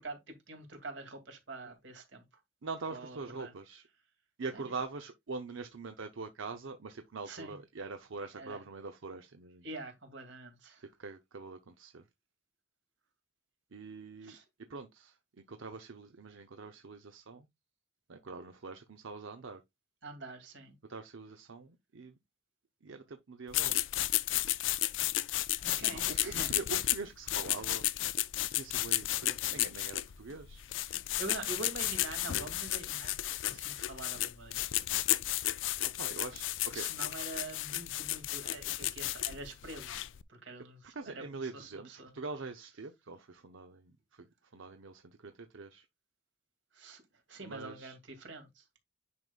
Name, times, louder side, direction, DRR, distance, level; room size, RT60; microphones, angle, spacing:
voice 1, 0.0-2.2 2.9-3.5 4.5-4.6 7.3-7.6 8.4-8.6 9.6-10.8 14.2-14.4 20.0-20.7 25.6-26.5 31.2-34.8 36.7-40.0 40.3-41.2 41.5-42.1 46.7-47.0 47.3-48.6, right 3 dB, 70° right, 2.5 m, -45 dB
voice 2, 2.6-3.9 4.4-9.7 10.8-12.0 13.7-14.4 14.7-17.5 18.1-19.6 20.9-22.2 22.8-23.8 25.9-27.9 28.5-30.7 36.0-36.9 40.9-44.3 44.5-45.8 47.4-48.0, right 4 dB, 90° right, 0.7 m, -44 dB
sound 1, 23.5-40.2, left 15 dB, 75° left, 0.4 m, -33 dB
9.6 x 5.3 x 2.4 m
head